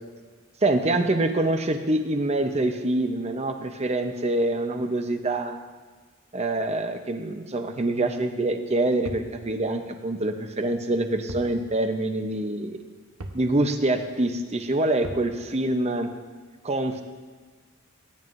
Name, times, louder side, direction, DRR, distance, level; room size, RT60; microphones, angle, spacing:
voice 1, 0.6-5.6 6.3-12.8 13.3-16.1 16.6-17.0, right 2 dB, 30° right, 6 dB, 0.8 m, -25 dB
sound 1, 9.0-9.4 11.3-11.6 11.9-12.0 13.2-13.5 15.0-15.3, right 1 dB, 85° right, 1.0 m, -38 dB
18.5 x 9.3 x 2.6 m, 1.5 s
head